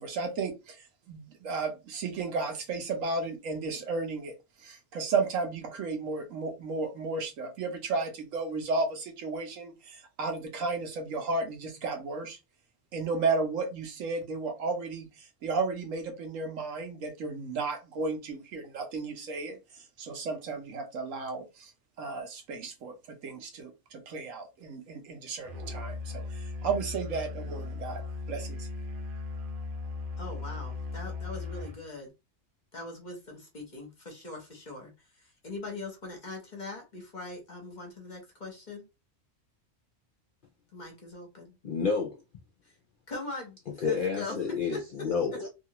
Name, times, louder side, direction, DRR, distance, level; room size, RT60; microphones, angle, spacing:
voice 1, 0.0-4.3 4.6-12.4 12.9-21.7 22.0-28.7, right 3 dB, 75° right, 1.2 m, -33 dB
Musical instrument, 25.5-31.8, left 3 dB, 55° right, 0.6 m, -37 dB
voice 2, 30.2-32.1 32.7-38.8 40.7-41.6 42.6-42.7 43.1-43.6 43.8-44.3 44.7-44.8, left 2 dB, 40° left, 0.9 m, -41 dB
voice 3, 41.6-42.2 43.8-45.5, left 5 dB, 60° left, 0.5 m, -29 dB
2.9 x 2.4 x 2.8 m
omnidirectional pair, 1.4 m